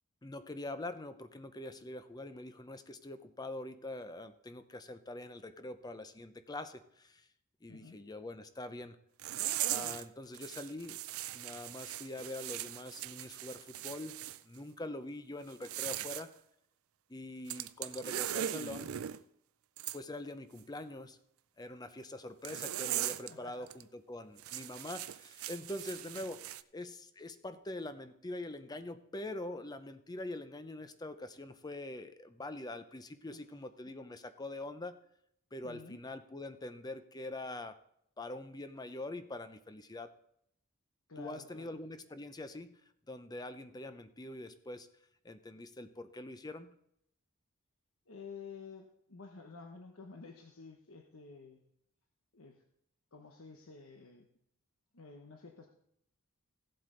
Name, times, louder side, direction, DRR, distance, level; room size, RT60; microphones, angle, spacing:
voice 1, 0.2-7.3 7.6-9.0 9.7-11.1 11.3-14.2 14.4-16.3 17.1-18.9 19.9-21.2 21.6-35.0 35.5-37.8 38.2-40.1 41.2-42.8 43.1-44.9 45.2-46.7, left 2 dB, 20° left, 10 dB, 0.6 m, -44 dB
voice 2, 7.7-8.0 23.3-23.7 33.3-33.4 35.6-36.0 41.1-41.8 48.1-51.6 52.3-52.6 53.1-54.3 54.9-55.7, left 5 dB, 75° left, 3 dB, 1.0 m, -51 dB
sound 1, 9.2-10.0 10.3-14.4 15.5-16.2 17.5-19.2 19.8-20.0 22.4-23.3 23.7-23.8 24.4-26.6, right 13 dB, 80° right, 0.4 m, -39 dB
16.0 x 7.7 x 3.9 m, 0.72 s
head